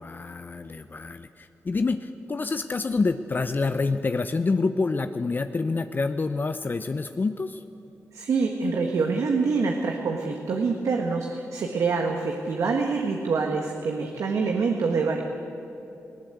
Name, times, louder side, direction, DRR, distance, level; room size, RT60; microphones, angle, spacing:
voice 1, 0.0-7.6, left 3 dB, 35° left, 10 dB, 0.7 m, -27 dB
voice 2, 8.1-15.2, right 4 dB, 75° right, 2 dB, 1.6 m, -26 dB
19.5 x 17.5 x 8.2 m, 2.9 s
cardioid pair, 70°, 5 cm